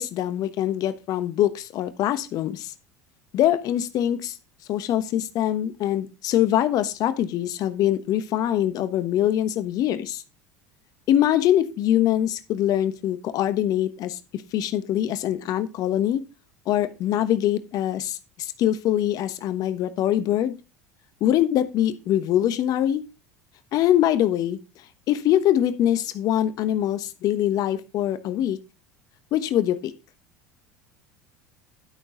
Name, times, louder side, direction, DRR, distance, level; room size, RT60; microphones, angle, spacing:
voice 1, 0.0-2.7 3.3-4.4 4.7-10.2 11.1-14.2 14.5-16.2 16.7-20.5 21.2-23.0 23.7-24.6 25.1-28.6 29.3-29.9, left 11 dB, 50° left, 1.1 m, -23 dB
12.0 x 6.3 x 3.8 m
hypercardioid pair, 80°, 8 cm